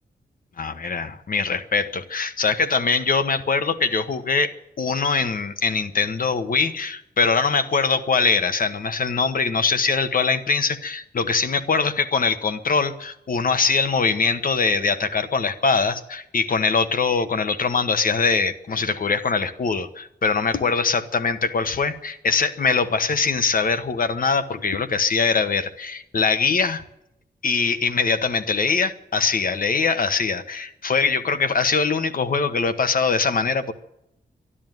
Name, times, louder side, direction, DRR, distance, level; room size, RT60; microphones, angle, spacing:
voice 1, 0.6-26.8 27.4-33.7, left 4 dB, 60° left, 11 dB, 1.2 m, -22 dB
12.5 x 11.5 x 9.3 m, 0.82 s
wide cardioid pair, 95°, 17 cm